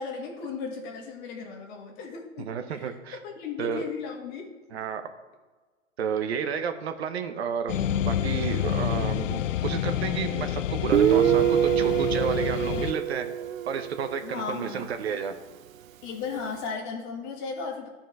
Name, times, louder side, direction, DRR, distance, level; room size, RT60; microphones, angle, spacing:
voice 1, 0.0-4.5 14.2-15.0 16.0-17.9, left 5 dB, 35° left, 2 dB, 1.7 m, -36 dB
voice 2, 2.5-3.2 3.6-3.8 4.7-5.0 6.0-7.7 8.0-13.3 13.7-15.4, right 7 dB, 55° right, 8 dB, 0.9 m, -31 dB
sound 1, 7.7-12.9, left 11 dB, 70° left, 0.5 m, -28 dB
Guitar, 10.9-14.4, right 10 dB, 85° right, 0.5 m, -24 dB
12.0 x 4.5 x 4.7 m, 1.3 s
hypercardioid pair, 135°, 39 cm